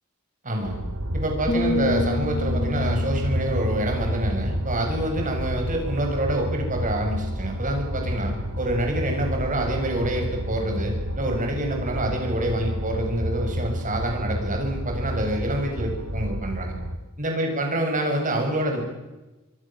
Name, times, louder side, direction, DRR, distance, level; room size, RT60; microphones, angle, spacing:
voice 1, 0.4-0.8 1.1-16.7 17.2-18.8, right 1 dB, 35° right, 3 dB, 7.4 m, -27 dB
sound 1, 0.6-17.0, equal, 80° right, 2.8 m, -29 dB
sound 2, 1.5-5.5 5.8-6.1, left 2 dB, 30° left, 4.2 m, -31 dB
26.0 x 25.0 x 7.6 m, 1.1 s
head